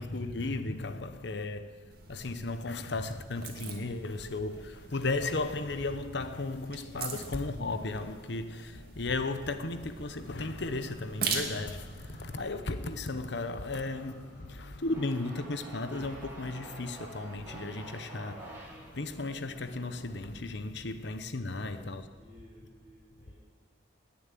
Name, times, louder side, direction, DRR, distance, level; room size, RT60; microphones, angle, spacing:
voice 1, 0.0-22.1, left 2 dB, 60° left, 0.9 m, -35 dB
sound 1, 1.9-12.4, right 5 dB, 50° right, 2.0 m, -42 dB
sound 2, 10.0-15.0, equal, 15° left, 5.9 m, -55 dB
sound 3, 14.9-20.3, right 2 dB, 10° right, 4.4 m, -48 dB
voice 2, 21.4-23.4, equal, 30° right, 5.6 m, -56 dB
20.0 x 7.2 x 9.1 m
head